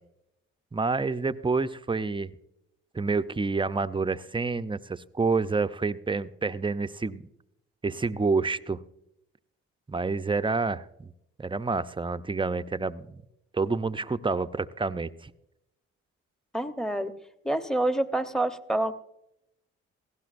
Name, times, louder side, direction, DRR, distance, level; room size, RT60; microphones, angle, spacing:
voice 1, 0.7-2.3 2.9-7.3 7.8-8.8 9.9-11.1 11.4-13.2 13.5-15.3, right 4 dB, 15° right, 12 dB, 0.6 m, -28 dB
voice 2, 16.5-17.2 17.4-18.9, right 1 dB, ahead, 10 dB, 1.0 m, -27 dB
18.0 x 16.0 x 2.6 m, 0.83 s
supercardioid pair, 50°, 31 cm